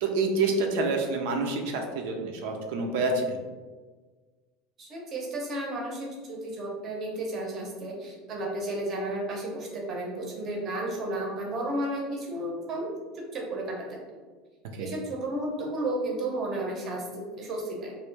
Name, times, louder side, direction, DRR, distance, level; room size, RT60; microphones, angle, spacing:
voice 1, 0.0-3.4 14.8-14.9, right 3 dB, 70° right, 3 dB, 0.6 m, -27 dB
voice 2, 4.8-13.8 14.8-18.0, right 1 dB, 30° right, -1 dB, 0.8 m, -33 dB
3.1 x 2.6 x 3.3 m, 1.4 s
cardioid pair, 165°, 0 cm